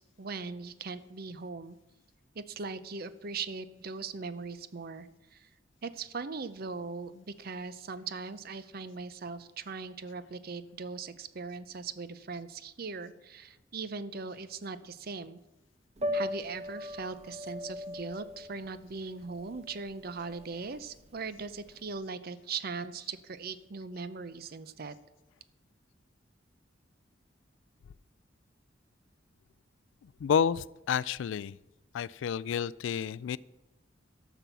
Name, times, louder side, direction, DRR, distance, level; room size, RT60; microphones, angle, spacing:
voice 1, 0.0-1.8 2.3-5.5 5.8-15.4 16.1-25.0, right 4 dB, 55° right, 14 dB, 0.6 m, -40 dB
Piano, 16.0-21.9, left 1 dB, 35° right, 1.0 m, -39 dB
voice 2, 30.0-31.6 31.9-33.4, left 7 dB, 80° left, 21 dB, 0.3 m, -30 dB
13.0 x 6.1 x 6.9 m, 0.98 s
head